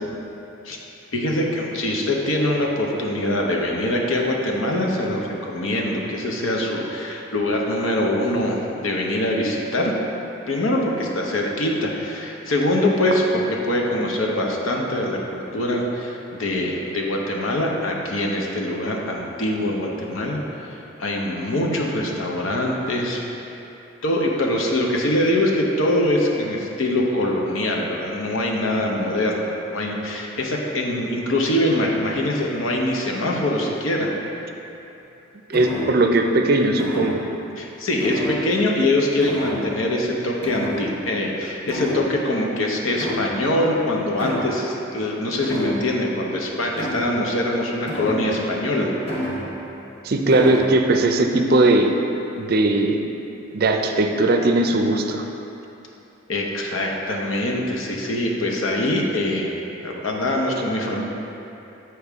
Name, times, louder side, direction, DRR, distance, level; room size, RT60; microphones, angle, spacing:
voice 1, 1.1-9.9 10.5-23.2 24.0-34.1 37.6-48.9 56.3-59.6 59.8-61.0, left 1 dB, 80° left, -1 dB, 0.8 m, -23 dB
sound 1, 35.5-36.2 36.8-37.4 38.0-38.9 39.2-39.9 40.4-41.3 41.7-42.4 43.0-43.6 44.2-44.7 45.4-46.1 46.7-47.3 47.9-48.5 49.1-49.8 50.3-50.8, left 1 dB, 30° left, 1.0 m, -30 dB
voice 2, 35.5-37.2 50.0-51.9 52.4-53.0 53.5-55.2, right 2 dB, 50° right, 4 dB, 0.4 m, -18 dB
8.2 x 4.6 x 3.5 m, 3.0 s
head